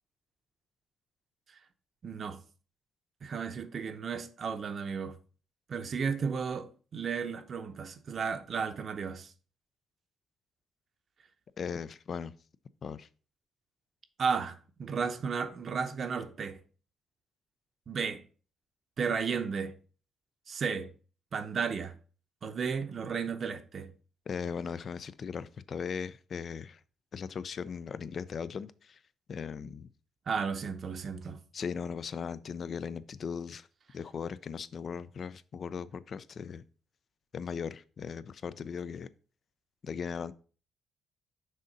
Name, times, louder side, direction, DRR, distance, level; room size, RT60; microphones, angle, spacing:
voice 1, 2.0-2.4 3.2-5.2 5.7-9.3 14.2-16.6 17.9-18.2 19.0-19.7 20.5-20.9 21.3-21.9 22.4-23.9 30.3-31.4, right 6 dB, 50° right, 0.7 m, -33 dB
voice 2, 11.6-12.3 12.8-13.1 24.3-26.8 27.1-29.0 29.3-29.9 31.5-33.7 33.9-36.6 37.3-39.1 39.8-40.3, left 6 dB, 50° left, 0.4 m, -38 dB
6.4 x 3.8 x 5.2 m
cardioid pair, 110°, 0 cm